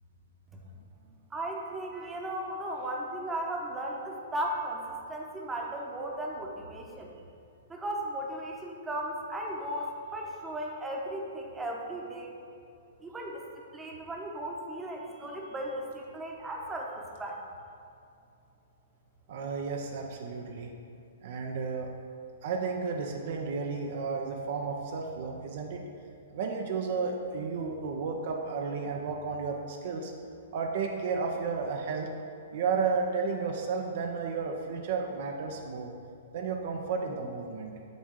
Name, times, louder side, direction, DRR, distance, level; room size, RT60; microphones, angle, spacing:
voice 1, 1.3-7.1 7.7-12.3 13.0-13.5 13.7-17.4, right 1 dB, 10° right, -1 dB, 0.9 m, -36 dB
voice 2, 19.3-20.7 21.2-21.9 22.4-25.8 26.3-30.1 30.5-32.1 32.5-35.9 36.3-37.7, right 5 dB, 50° right, 1 dB, 0.6 m, -32 dB
7.9 x 3.4 x 6.4 m, 2.5 s
figure-of-eight pair, 110°, 0 cm